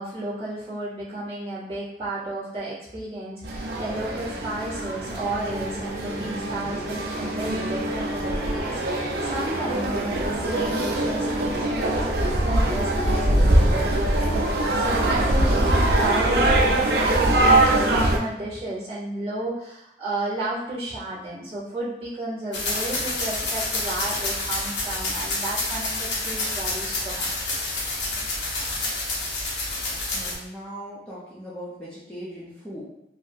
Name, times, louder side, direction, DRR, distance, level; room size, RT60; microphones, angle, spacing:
voice 1, 0.0-27.4, right 1 dB, 35° right, -10 dB, 1.2 m, -32 dB
sound 1, 3.4-18.2, right 1 dB, 60° right, 0.5 m, -23 dB
sound 2, 22.5-30.4, left 2 dB, 90° left, 0.8 m, -28 dB
voice 2, 30.1-32.8, equal, 5° left, -10 dB, 0.6 m, -39 dB
3.9 x 2.1 x 2.6 m, 0.84 s
head